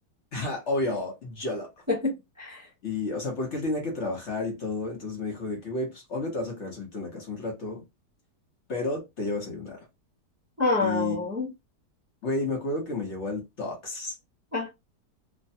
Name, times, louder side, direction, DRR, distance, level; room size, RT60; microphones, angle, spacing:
voice 1, 0.3-1.7 2.8-7.8 8.7-9.8 10.8-11.3 12.2-14.1, left 2 dB, 50° left, 1.0 m, -31 dB
voice 2, 1.9-2.7 10.6-11.5 14.5-14.7, left 3 dB, 15° right, 0.5 m, -27 dB
3.1 x 2.2 x 2.7 m
omnidirectional pair, 1.8 m